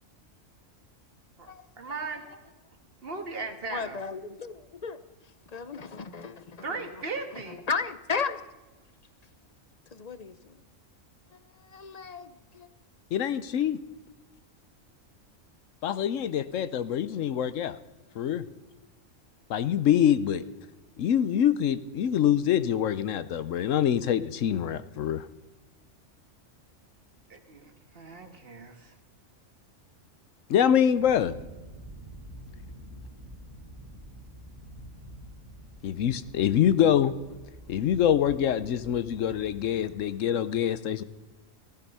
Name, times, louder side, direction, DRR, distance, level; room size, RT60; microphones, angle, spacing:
voice 1, 1.4-2.2 3.0-4.0 6.6-7.6 27.3-28.9, right 3 dB, 45° right, 6 dB, 1.9 m, -37 dB
voice 2, 3.7-5.0 5.5-6.6 7.7-8.4 9.9-10.3 11.7-12.7, left 5 dB, 40° left, 13 dB, 0.6 m, -34 dB
voice 3, 13.1-13.8 15.8-17.8 18.2-18.4 19.5-20.4 21.0-25.3 30.5-31.3 35.8-37.1 37.7-41.0, left 9 dB, 75° left, 14 dB, 1.1 m, -25 dB
sound 1, 30.9-39.9, right 1 dB, 15° right, 2.4 m, -47 dB
16.0 x 15.0 x 5.5 m, 1.1 s
omnidirectional pair, 1.3 m